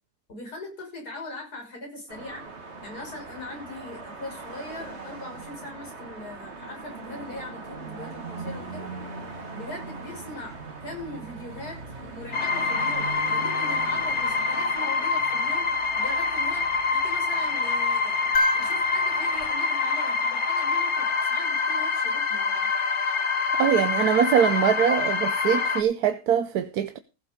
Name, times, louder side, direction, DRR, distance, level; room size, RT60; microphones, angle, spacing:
voice 1, 0.3-2.4 2.8-8.9 9.5-22.7, left 2 dB, 90° left, 6.6 m, -41 dB
sound 1, 2.1-19.5, right 4 dB, 45° right, 2.4 m, -41 dB
sound 2, 12.3-25.8, left 4 dB, 50° left, 1.6 m, -26 dB
sound 3, 18.3-20.7 22.7-22.8, left 2 dB, 65° left, 2.4 m, -30 dB
voice 2, 23.6-27.0, right 8 dB, 80° right, 1.4 m, -23 dB
15.5 x 7.9 x 5.2 m
omnidirectional pair, 1.6 m